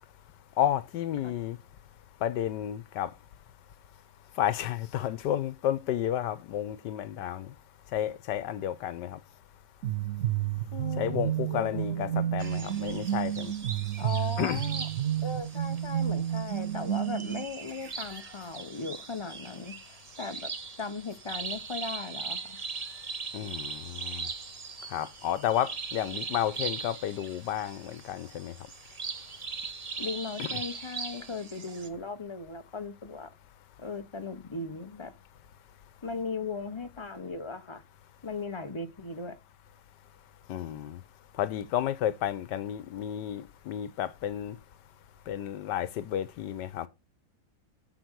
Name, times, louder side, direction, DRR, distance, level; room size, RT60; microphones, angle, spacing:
voice 1, 0.6-1.6 2.2-3.1 4.4-7.5 7.9-9.2 11.0-13.5 14.4-14.6 23.3-24.3 24.9-28.5 30.4-30.6 40.5-41.0 41.4-44.6 45.3-46.9, left 11 dB, 85° left, 1.4 m, -31 dB
sound 1, 9.8-17.4, right 11 dB, 65° right, 0.8 m, -31 dB
voice 2, 10.7-12.3 14.0-14.9 15.2-20.5 20.8-22.6 30.0-33.3 33.8-35.2 36.0-37.8 38.2-39.3, left 4 dB, 25° left, 0.7 m, -38 dB
sound 2, 12.4-31.9, right 5 dB, 45° right, 0.4 m, -40 dB
7.9 x 7.0 x 4.7 m
omnidirectional pair, 1.8 m